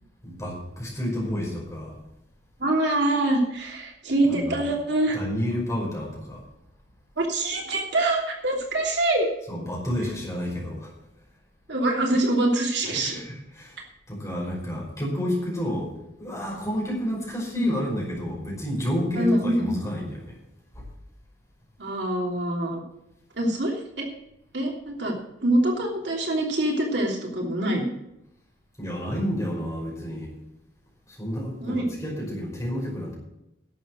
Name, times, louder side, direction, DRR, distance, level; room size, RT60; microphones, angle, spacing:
voice 1, 0.2-2.0 4.2-4.6 5.1-6.4 9.5-10.9 12.9-13.8 14.1-15.9 16.2-20.4 20.8-20.9 28.8-30.3 31.1-33.1, equal, 15° left, -3 dB, 5.4 m, -30 dB
voice 2, 2.6-5.2 7.2-9.3 11.7-13.2 17.6-17.7 19.1-19.7 21.8-22.8 23.4-24.1 24.5-25.1 25.4-27.8 31.6-31.9, right 1 dB, 65° right, 0 dB, 3.0 m, -24 dB
11.5 x 7.7 x 7.7 m, 0.84 s
head